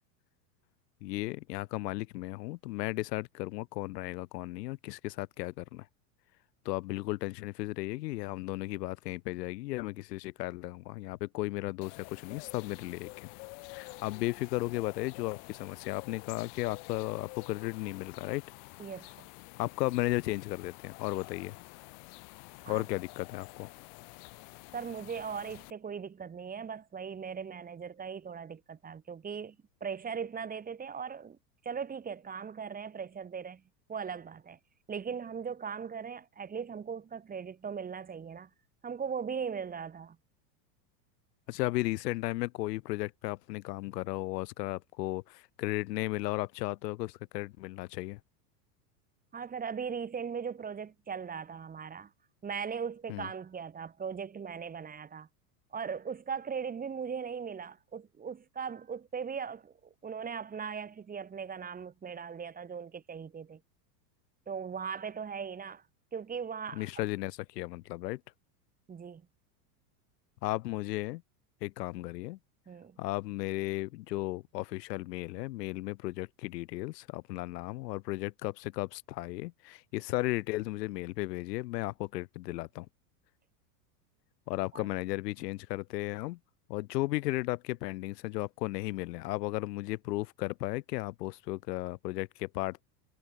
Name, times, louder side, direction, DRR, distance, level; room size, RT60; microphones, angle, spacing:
voice 1, 1.0-5.9 6.6-13.3 13.7-18.4 19.6-21.6 22.7-23.7 41.5-48.2 53.1-53.3 66.7-68.2 70.4-71.2 71.6-72.4 73.0-82.9 84.5-86.4 86.7-92.8, left 19 dB, 85° left, 0.8 m, -35 dB
sound 1, 11.8-25.7, left 40 dB or more, 60° left, 7.2 m, -49 dB
voice 2, 18.8-19.3 22.6-22.8 24.7-29.6 29.8-31.4 31.6-33.6 33.9-34.6 34.9-38.5 38.8-40.2 49.3-52.1 52.4-55.3 55.7-63.6 64.5-65.8 66.1-67.1 68.9-69.2 72.7-73.0 84.7-84.9, right 6 dB, 20° right, 1.9 m, -39 dB
supercardioid pair, 130°, 47 cm